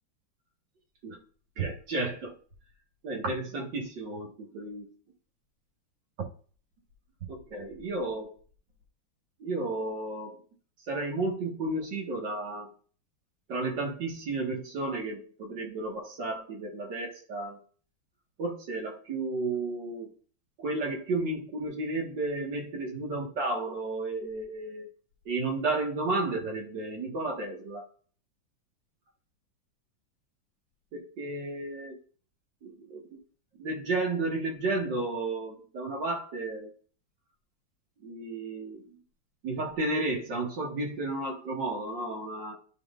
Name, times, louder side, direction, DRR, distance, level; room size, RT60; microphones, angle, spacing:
voice 1, 1.6-2.3 3.0-4.9 6.2-6.3 7.5-8.3 9.4-10.4 10.9-12.7 13.5-17.6 18.4-20.1 20.6-24.9 25.3-27.8 30.9-32.0 32.6-33.2 33.6-36.7 38.0-39.0 39.4-42.5, right 2 dB, 60° right, 1 dB, 2.2 m, -32 dB
12.5 x 4.5 x 2.5 m, 0.43 s
omnidirectional pair, 2.2 m